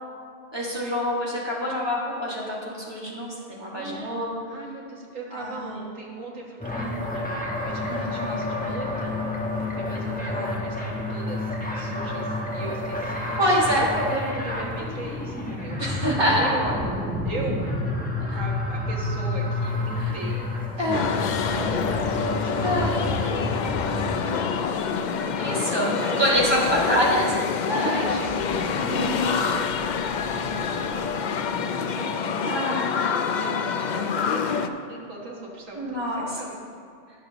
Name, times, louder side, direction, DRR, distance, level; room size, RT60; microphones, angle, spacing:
voice 1, 0.5-4.4 5.3-5.8 6.7-7.0 7.9-8.3 10.3-10.5 13.4-13.9 15.8-16.7 18.3-18.4 20.0-20.1 20.8-21.1 22.6-22.9 25.4-27.3 27.7-28.1 28.8-29.2 32.4-32.9 35.7-36.4, equal, 20° right, -6 dB, 1.9 m, -26 dB
voice 2, 3.7-4.2 4.5-9.3 9.6-13.4 13.8-17.7 18.3-20.5 20.8-21.0 21.4-23.6 23.9-27.2 27.9-29.7 30.4-31.4 32.0-33.1 33.4-36.1 36.3-36.6, right 2 dB, 85° right, -2 dB, 1.9 m, -38 dB
sound 1, 6.6-24.2, left 2 dB, 5° left, 0.9 m, -29 dB
sound 2, 20.9-34.7, left 6 dB, 75° left, 0.4 m, -27 dB
sound 3, 21.8-33.8 34.0-34.1, left 1 dB, 45° left, 1.3 m, -42 dB
17.5 x 6.6 x 3.0 m, 2.2 s
omnidirectional pair, 1.3 m